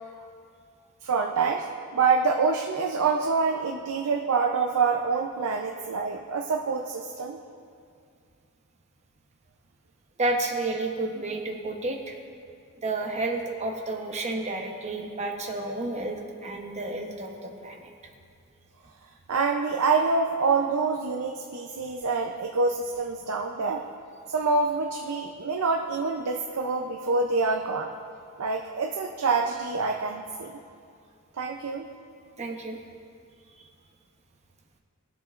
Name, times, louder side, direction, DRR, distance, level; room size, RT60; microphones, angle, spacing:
voice 1, 1.0-1.6 1.9-7.4 19.3-23.8 24.3-27.9 28.4-30.6 31.4-31.9, right 4 dB, 85° right, 2 dB, 0.6 m, -26 dB
voice 2, 10.2-12.2 12.8-17.9 32.4-32.8, right 2 dB, 30° right, 2 dB, 0.9 m, -31 dB
21.5 x 7.6 x 2.5 m, 2.4 s
head